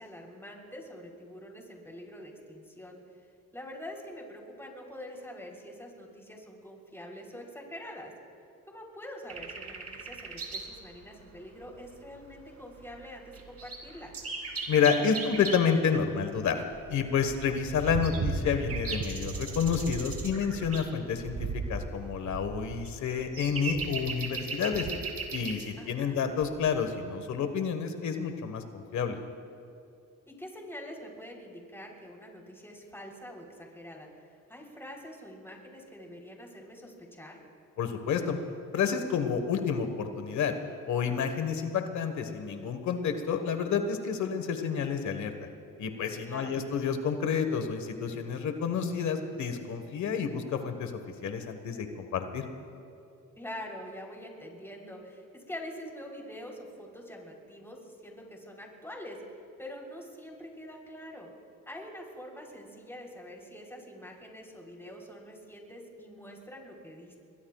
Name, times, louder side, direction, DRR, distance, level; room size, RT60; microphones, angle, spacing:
voice 1, 0.0-3.0 3.5-8.1 8.7-14.1 25.8-26.2 30.3-34.1 34.5-37.4 46.2-46.6 53.4-59.2 59.6-61.3 61.7-67.2, equal, 10° left, 0 dB, 3.7 m, -45 dB
sound 1, 9.3-10.8 11.0-11.1 11.8-11.9 12.1-12.5 12.9-13.0 13.3-15.7 16.4-25.7 26.4-26.7, right 4 dB, 55° right, 2.5 m, -36 dB
voice 2, 14.7-16.6 16.9-24.9 25.3-29.2 37.8-38.4 38.7-40.5 40.9-45.3 45.8-50.9 51.2-52.4, left 6 dB, 70° left, 7 dB, 1.5 m, -29 dB
26.5 x 21.5 x 2.4 m, 2.6 s
cardioid pair, 90°, 30 cm